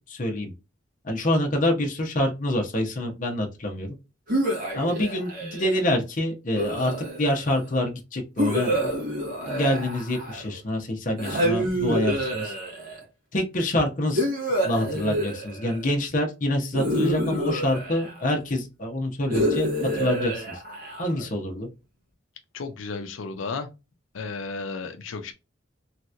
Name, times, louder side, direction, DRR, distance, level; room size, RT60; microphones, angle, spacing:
voice 1, 0.1-0.5 1.0-3.9 4.7-9.0 9.5-12.5 13.3-14.3 14.6-20.4 21.0-21.7, left 1 dB, 40° left, 0.8 m, -26 dB
sound 1, 4.3-5.8 6.5-7.5 8.4-10.6 11.2-13.0 14.1-15.9 16.7-18.4 19.3-21.3, equal, 45° right, 1.5 m, -28 dB
voice 2, 22.5-23.7 24.1-25.3, left 4 dB, 85° left, 0.5 m, -33 dB
3.2 x 2.9 x 2.4 m
head